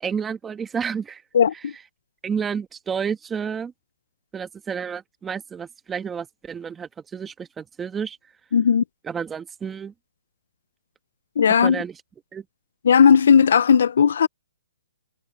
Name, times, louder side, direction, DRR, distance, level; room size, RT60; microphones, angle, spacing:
voice 1, 0.0-1.2 2.2-3.7 4.3-8.2 9.0-9.9 11.6-11.9 12.3-12.4, right 6 dB, 10° right, 1.3 m, -30 dB
voice 2, 1.3-1.7 8.5-8.8 11.4-11.8 12.8-14.3, left 7 dB, 70° left, 0.5 m, -16 dB
hypercardioid pair, 160°, 0 cm